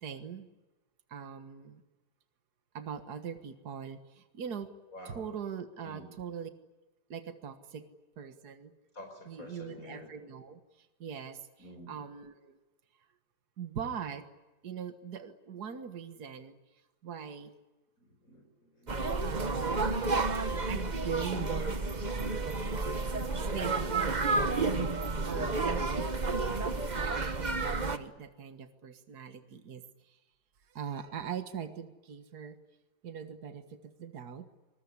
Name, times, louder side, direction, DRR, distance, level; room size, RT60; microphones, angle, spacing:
voice 1, 0.0-0.5 1.1-1.8 2.7-4.7 5.0-6.5 7.1-7.9 8.2-8.7 9.3-12.6 13.6-14.3 14.6-16.6 17.0-17.5 19.2-20.0 20.7-21.5 23.4-24.5 25.2-30.2 30.7-32.6 33.0-34.5, right 7 dB, 65° right, 8 dB, 2.1 m, -41 dB
voice 2, 4.9-5.2 5.8-6.1 8.9-10.1 11.6-12.0 18.0-19.2 25.3-25.7, left 1 dB, 50° left, 4 dB, 5.5 m, -49 dB
sound 1, 18.9-28.0, right 3 dB, 30° right, 1.2 m, -31 dB
25.0 x 21.5 x 9.8 m, 1.1 s
omnidirectional pair, 1.8 m